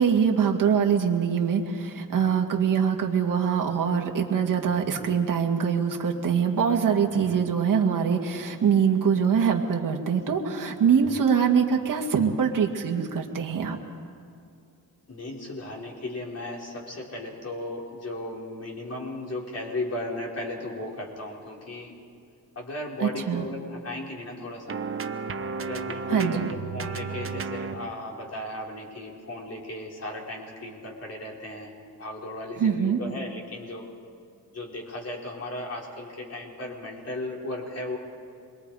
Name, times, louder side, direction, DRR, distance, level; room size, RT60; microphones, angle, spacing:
voice 1, 0.0-13.8 23.0-23.4 26.1-26.5 32.6-33.0, right 7 dB, 55° right, 1 dB, 2.1 m, -23 dB
voice 2, 15.1-21.9 22.5-24.8 25.6-31.7 32.0-33.8 34.5-38.0, left 1 dB, 40° left, -2 dB, 4.5 m, -36 dB
sound 1, 24.7-27.9, right 5 dB, 35° right, 0.9 m, -33 dB
28.0 x 22.5 x 4.9 m, 2.4 s
cardioid pair, 130°, 38 cm